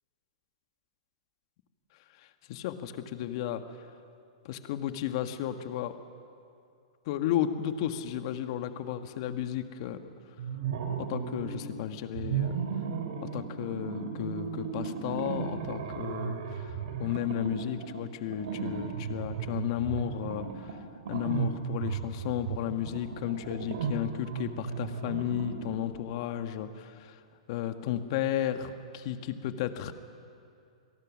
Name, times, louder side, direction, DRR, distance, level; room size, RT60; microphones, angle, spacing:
voice 1, 2.5-3.6 4.4-5.9 7.1-10.0 11.0-12.6 13.3-16.7 17.0-20.5 21.1-27.1 27.5-29.9, left 11 dB, 50° left, 8 dB, 1.4 m, -33 dB
sound 1, 10.4-11.7 12.1-26.0, right 7 dB, 65° right, 2.7 m, -35 dB
26.5 x 18.5 x 6.3 m, 2.4 s
hypercardioid pair, 125°, 4 cm